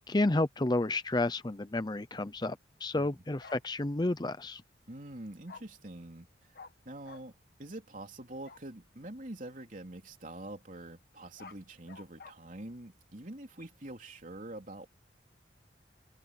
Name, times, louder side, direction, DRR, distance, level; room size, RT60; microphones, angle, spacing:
voice 1, 0.1-4.6, left 2 dB, 20° left, 0.6 m, -31 dB
Bark, 3.4-3.6 5.5-5.6 6.5-6.7 7.0-7.2 8.4-8.6 11.1-12.3, left 4 dB, 50° left, 1.4 m, -50 dB
voice 2, 4.9-6.6 6.9-7.3 7.6-14.9, right 1 dB, 45° right, 3.5 m, -45 dB
head